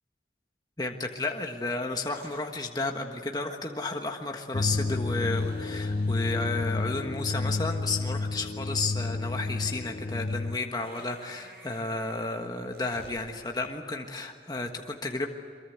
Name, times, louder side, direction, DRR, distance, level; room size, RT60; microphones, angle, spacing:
voice 1, 0.8-15.3, left 3 dB, 20° left, 3 dB, 1.4 m, -32 dB
sound 1, 1.1-1.4 2.1-2.5 5.3-7.9 10.7-13.2, right 1 dB, 55° right, 7.2 m, -52 dB
sound 2, 4.5-10.6, left 3 dB, 40° left, 0.6 m, -30 dB
24.0 x 23.0 x 8.1 m, 2.2 s
head